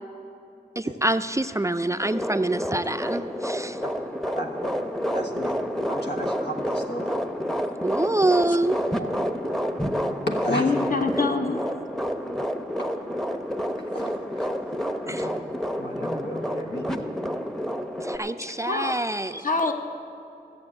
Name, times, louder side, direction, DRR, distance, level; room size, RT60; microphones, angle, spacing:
voice 1, 0.8-3.8 7.8-8.8 11.2-11.3 15.1-15.3 18.0-19.4, right 2 dB, 15° right, 10 dB, 0.3 m, -26 dB
sound 1, 2.0-18.2, equal, ahead, 0.7 m, -29 dB
voice 2, 4.3-4.7 5.1-7.1 10.3-10.7 13.8-14.5 15.1-15.3 15.8-17.4, equal, 90° left, 1 dB, 1.5 m, -34 dB
voice 3, 10.5-11.6 18.7-18.9 19.4-19.7, left 3 dB, 50° left, 5 dB, 0.9 m, -25 dB
15.0 x 6.9 x 8.9 m, 2.8 s
wide cardioid pair, 70°, 17 cm